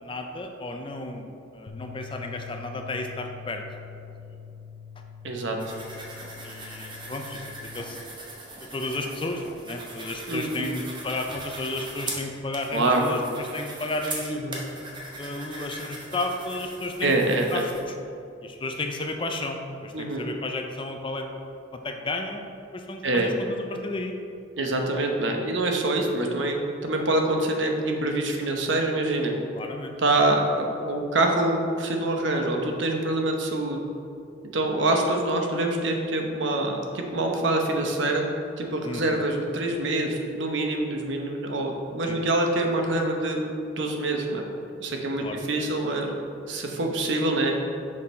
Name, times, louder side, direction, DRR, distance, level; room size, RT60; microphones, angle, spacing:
voice 1, 0.0-3.6 5.3-5.4 6.4-8.0 8.7-14.4 15.2-17.2 17.5-18.0 18.4-21.3 21.7-24.1 29.5-30.0 38.8-39.2 42.1-42.2 45.2-45.4, left 2 dB, 25° left, 4 dB, 0.4 m, -33 dB
sound 1, 1.7-7.9, left 7 dB, 65° left, 0.7 m, -44 dB
voice 2, 5.2-5.6 10.3-10.7 12.7-13.2 14.3-14.6 17.0-17.6 19.9-20.2 23.0-23.3 24.6-26.6 26.8-29.3 30.0-33.8 34.5-38.2 38.6-43.4 43.7-44.4 44.8-46.1 46.5-47.5, right 2 dB, 65° right, 2 dB, 0.8 m, -25 dB
sound 2, 5.6-17.8, right 2 dB, 20° right, 0.9 m, -40 dB
6.6 x 5.5 x 4.3 m, 2.7 s
head